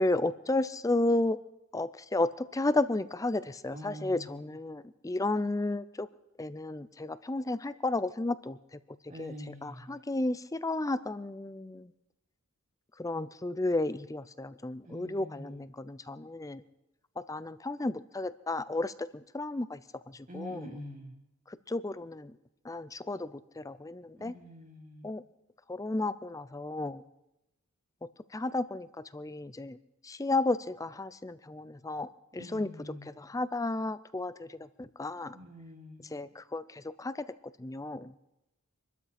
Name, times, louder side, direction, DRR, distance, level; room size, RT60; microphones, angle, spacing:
voice 1, 0.0-1.4 1.7-6.1 6.4-8.6 9.2-9.3 9.6-11.9 13.0-16.6 17.2-19.8 20.1-20.7 21.5-22.3 22.6-24.3 25.0-25.2 25.7-27.0 28.3-28.9 29.1-29.8 30.0-32.7 33.1-35.4 36.1-37.1 37.6-38.1, left 2 dB, 15° left, 15 dB, 0.5 m, -33 dB
voice 2, 3.7-4.6 9.1-10.0 14.8-15.6 20.3-21.2 24.2-25.1 32.3-33.1 35.3-36.0, equal, 35° right, 2 dB, 2.5 m, -46 dB
25.5 x 13.0 x 4.3 m, 0.91 s
head